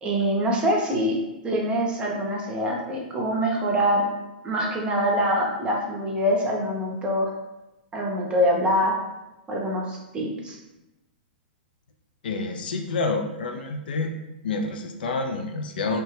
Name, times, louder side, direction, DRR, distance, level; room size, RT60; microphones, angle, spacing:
voice 1, 0.0-4.1 4.4-7.3 7.9-8.9 9.5-10.6, equal, 20° right, -1 dB, 0.6 m, -24 dB
voice 2, 12.2-14.1 14.4-16.0, left 3 dB, 70° left, 4 dB, 0.4 m, -28 dB
2.9 x 2.1 x 3.2 m, 0.99 s
hypercardioid pair, 120°, 5 cm